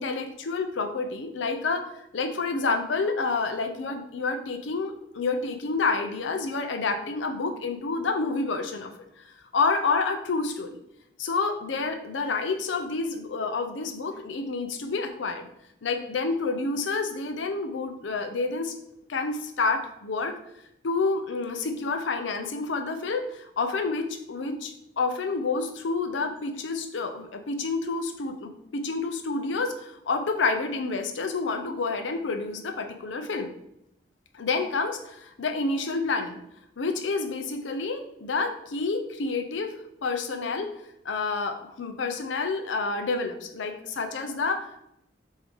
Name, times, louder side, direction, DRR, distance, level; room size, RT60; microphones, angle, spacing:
voice 1, 0.0-8.9 9.5-10.8 11.2-15.5 15.8-18.7 19.1-20.3 20.8-33.5 34.3-36.4 36.8-39.7 40.0-40.7 41.0-44.8, left 4 dB, 85° left, 5 dB, 0.5 m, -29 dB
4.7 x 2.7 x 3.4 m, 0.78 s
head